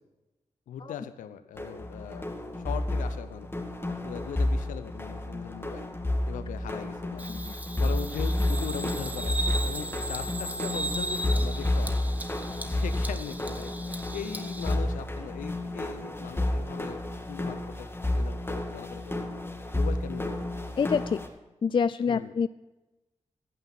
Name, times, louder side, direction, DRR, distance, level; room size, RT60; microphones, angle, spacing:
voice 1, 0.7-2.3 2.5-3.5 4.0-5.9 6.3-7.2 7.8-12.1 12.7-17.8 18.2-19.2 19.7-20.5 22.1-22.3, left 9 dB, 90° left, 11 dB, 0.6 m, -40 dB
sound 1, 1.5-21.3, left 1 dB, 20° left, 2.0 m, -31 dB
Bird vocalization bird call bird song, 7.2-14.7, right 2 dB, 10° right, 1.3 m, -37 dB
voice 2, 20.8-21.2 21.6-22.5, left 6 dB, 40° left, 15 dB, 0.3 m, -26 dB
15.0 x 5.7 x 7.2 m, 1.0 s
supercardioid pair, 40°, 13 cm